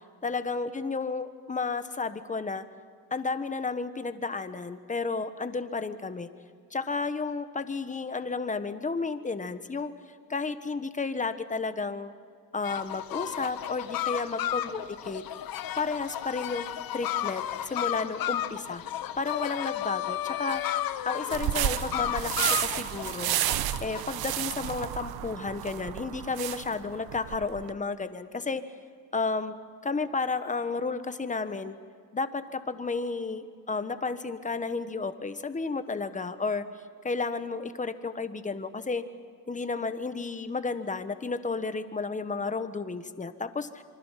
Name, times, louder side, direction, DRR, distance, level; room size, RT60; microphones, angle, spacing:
voice 1, 0.2-2.6 3.1-6.3 6.7-9.9 10.3-12.1 12.5-15.2 15.8-16.7 16.9-18.8 19.2-20.6 21.0-22.3 22.6-23.4 23.8-28.6 29.1-29.5 29.8-31.8 32.1-36.6 37.0-39.0 39.5-43.8, left 4 dB, 20° left, 10 dB, 1.3 m, -32 dB
sound 1, 12.6-24.0, left 12 dB, 75° left, 1.1 m, -33 dB
sound 2, 21.3-27.7, right 12 dB, 85° right, 1.0 m, -31 dB
26.5 x 24.5 x 5.9 m, 2.2 s
cardioid pair, 110°, 36 cm